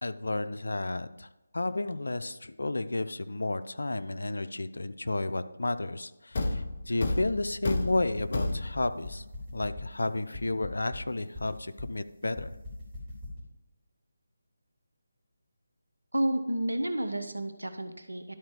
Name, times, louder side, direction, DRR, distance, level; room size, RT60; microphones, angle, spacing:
voice 1, 0.0-9.2 9.5-12.5, left 2 dB, 70° left, 11 dB, 0.6 m, -32 dB
Thump thud, 6.3-9.0, left 2 dB, 45° left, 0.9 m, -31 dB
sound 1, 8.0-13.4, left 2 dB, 10° right, 3.1 m, -42 dB
voice 2, 16.1-18.3, right 1 dB, 90° right, 8 dB, 1.1 m, -30 dB
12.0 x 4.2 x 4.9 m, 1.0 s
figure-of-eight pair, 155°, 0 cm